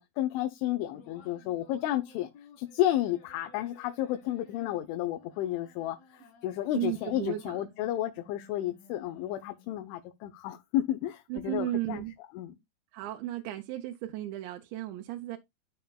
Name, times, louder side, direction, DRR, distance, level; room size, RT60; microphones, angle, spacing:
voice 1, 0.0-2.3 2.6-12.0 12.3-12.5, left 13 dB, 85° left, 3.3 m, -32 dB
prob vocoder, 0.9-9.9, left 3 dB, 50° left, 2.4 m, -58 dB
voice 2, 6.7-7.6 11.3-12.1 12.9-15.4, right 14 dB, 80° right, 3.0 m, -34 dB
13.0 x 5.8 x 2.4 m
omnidirectional pair, 5.3 m